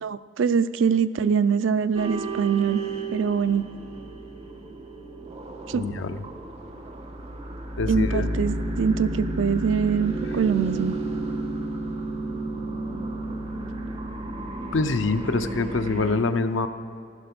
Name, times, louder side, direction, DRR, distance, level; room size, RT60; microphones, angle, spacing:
voice 1, 0.0-2.8 3.1-3.7 5.7-5.8 7.9-11.0, right 6 dB, 80° right, 13 dB, 0.4 m, -23 dB
sound 1, 1.9-16.1, right 2 dB, 35° right, 1.3 m, -32 dB
voice 2, 5.7-6.2 7.8-8.3 14.7-16.7, left 3 dB, 80° left, 9 dB, 0.7 m, -25 dB
15.0 x 11.5 x 6.0 m, 2.4 s
head